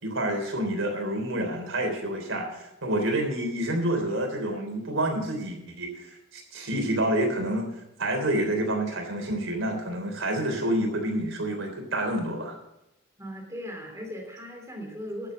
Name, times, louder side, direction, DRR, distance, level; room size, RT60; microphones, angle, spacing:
voice 1, 0.0-5.9 6.3-7.7 8.0-12.6, right 1 dB, 80° right, 3 dB, 3.5 m, -28 dB
voice 2, 13.2-15.3, equal, 15° right, 1 dB, 3.1 m, -38 dB
11.5 x 7.7 x 7.9 m, 0.87 s
head